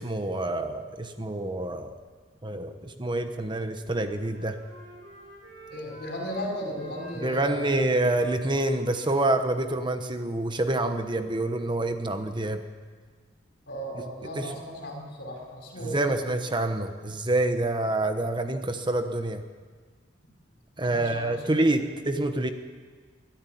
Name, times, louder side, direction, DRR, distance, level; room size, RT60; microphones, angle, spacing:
voice 1, 0.0-1.9 2.4-4.6 7.2-12.6 13.9-14.6 15.8-19.4 20.8-22.5, right 2 dB, 25° right, 7 dB, 1.0 m, -27 dB
Wind instrument woodwind instrument, 3.8-6.5 6.7-10.4, right 1 dB, 85° right, 6.7 m, -49 dB
voice 2, 5.7-7.8 13.7-16.3 20.8-21.4, equal, 60° left, 2 dB, 5.2 m, -36 dB
22.5 x 13.5 x 9.2 m, 1.5 s
head